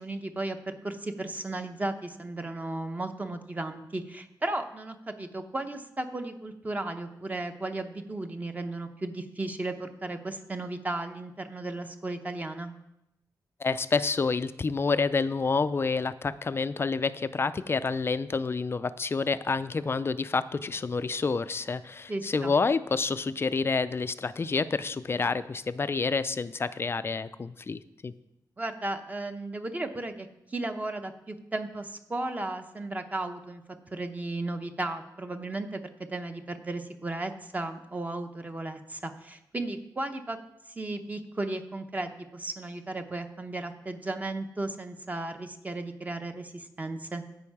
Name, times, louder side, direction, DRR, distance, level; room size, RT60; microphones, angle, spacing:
voice 1, 0.0-12.7 22.1-22.5 28.6-33.6 33.9-35.8 36.1-40.4 40.7-47.2, right 2 dB, 20° right, 6 dB, 0.9 m, -35 dB
voice 2, 13.6-28.1, left 4 dB, 35° left, 13 dB, 0.4 m, -28 dB
15.5 x 5.4 x 4.8 m, 0.86 s
wide cardioid pair, 120°, 7 cm